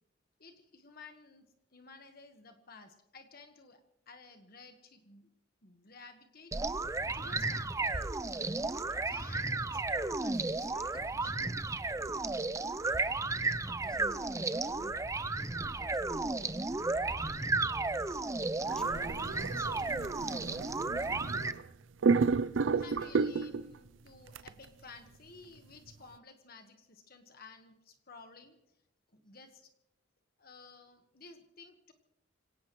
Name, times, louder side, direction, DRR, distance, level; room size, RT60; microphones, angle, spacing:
voice 1, 0.4-1.4 1.7-3.8 4.1-5.3 5.6-6.5 7.1-8.1 9.0-11.6 22.8-28.6 29.2-29.7 30.4-31.9, left 4 dB, 50° left, 6 dB, 1.4 m, -54 dB
sound 1, 6.5-21.5, right 3 dB, 15° right, 0.5 m, -33 dB
voice 2, 12.9-13.2 13.6-14.9 15.4-20.1, equal, 5° left, 2 dB, 2.3 m, -51 dB
sound 2, 18.7-21.7 22.0-23.7 24.4-24.5, right 4 dB, 80° right, 0.5 m, -31 dB
26.5 x 17.5 x 3.1 m, 0.80 s
head